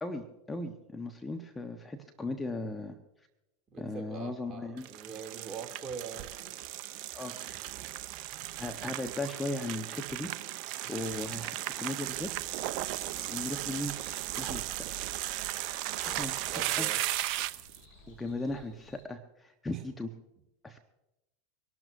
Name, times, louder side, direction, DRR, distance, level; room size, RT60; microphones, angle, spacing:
voice 1, 0.0-3.0 3.8-4.9 7.1-7.8 8.6-10.3 10.9-12.3 12.5-12.7 13.2-13.9 14.4-14.8 16.0-16.9 18.1-20.1 20.6-20.8, left 2 dB, 15° left, 5 dB, 1.2 m, -37 dB
voice 2, 3.7-6.3 16.0-17.0, right 6 dB, 30° right, 2 dB, 2.8 m, -43 dB
sound 1, 4.8-17.8, right 14 dB, 55° right, 0.7 m, -36 dB
Bird, 12.1-19.0, equal, 50° left, 6.8 m, -57 dB
25.0 x 12.0 x 2.7 m, 0.91 s
hypercardioid pair, 85°, 0 cm